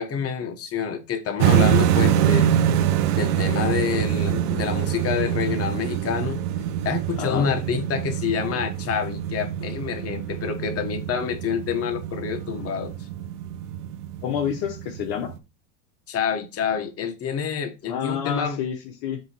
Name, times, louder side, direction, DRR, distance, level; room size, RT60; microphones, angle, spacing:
voice 1, 0.0-2.5 3.2-6.4 6.8-12.9 16.1-18.6, left 7 dB, 30° left, 1.2 m, -27 dB
sound 1, 1.4-15.4, right 10 dB, 80° right, 0.9 m, -25 dB
voice 2, 7.2-7.5 14.2-15.3 17.9-19.2, left 9 dB, 55° left, 0.9 m, -28 dB
7.6 x 2.9 x 4.4 m
supercardioid pair, 120°, 45 cm